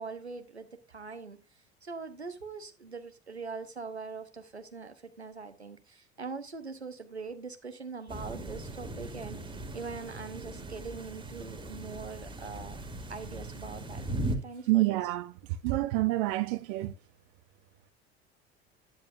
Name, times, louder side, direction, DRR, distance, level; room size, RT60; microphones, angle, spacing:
voice 1, 0.0-1.4 1.8-12.8 13.1-14.0 14.4-15.0, right 4 dB, 90° right, 1.0 m, -42 dB
sound 1, 8.1-14.4, right 1 dB, 15° right, 2.0 m, -39 dB
voice 2, 14.7-15.3 15.6-16.9, right 18 dB, 55° right, 0.7 m, -27 dB
10.5 x 9.5 x 2.5 m
figure-of-eight pair, 65°, 32 cm